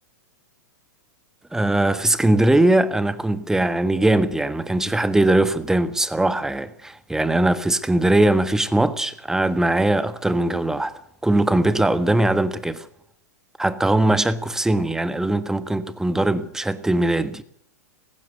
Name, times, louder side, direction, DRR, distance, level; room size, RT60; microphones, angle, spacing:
voice 1, 1.5-10.9 11.2-12.9 13.6-17.4, right 1 dB, 5° right, 1.5 m, -20 dB
18.5 x 15.5 x 9.5 m
hypercardioid pair, 115°, 9 cm